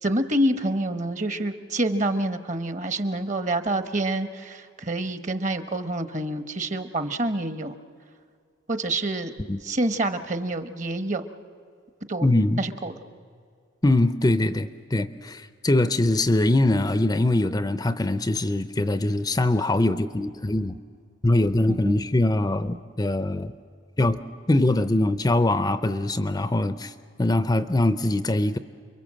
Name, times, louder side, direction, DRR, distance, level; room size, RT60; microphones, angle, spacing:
voice 1, 0.0-7.8 8.7-9.3 9.6-11.3 12.1-12.3 12.6-13.0 21.7-22.0, right 1 dB, 35° right, 10 dB, 1.1 m, -27 dB
voice 2, 12.2-12.6 13.8-20.8 21.2-23.5 24.0-24.2 24.5-26.9 27.2-28.6, left 2 dB, 20° left, 11 dB, 0.6 m, -22 dB
29.5 x 23.0 x 7.5 m, 2.2 s
head